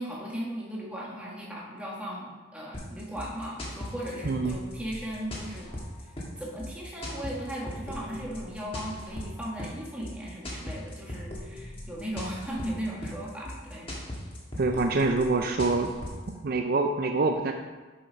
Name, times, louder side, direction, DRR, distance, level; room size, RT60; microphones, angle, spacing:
voice 1, 0.0-5.7 6.0-13.9, equal, 5° right, -4 dB, 1.5 m, -37 dB
sound 1, 2.7-16.3, left 1 dB, 25° left, 1.5 m, -39 dB
voice 2, 4.2-4.6 14.6-16.0 16.4-17.5, right 3 dB, 45° right, 5 dB, 0.4 m, -25 dB
7.0 x 5.6 x 5.3 m, 1.3 s
head